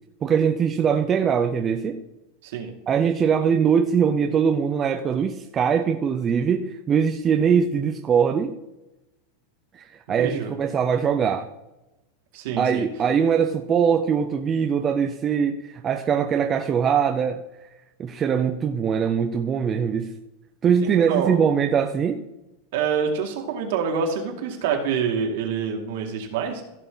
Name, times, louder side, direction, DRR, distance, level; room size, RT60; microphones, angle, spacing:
voice 1, 0.2-2.0 2.9-8.6 9.7-11.5 12.6-17.4 18.0-20.2 20.6-22.2, right 7 dB, 20° right, 5 dB, 0.5 m, -22 dB
voice 2, 10.1-10.5 12.3-12.9 20.8-21.4 22.7-26.6, right 6 dB, 60° right, 2 dB, 2.3 m, -26 dB
15.5 x 6.0 x 4.0 m, 0.97 s
supercardioid pair, 160°, 0 cm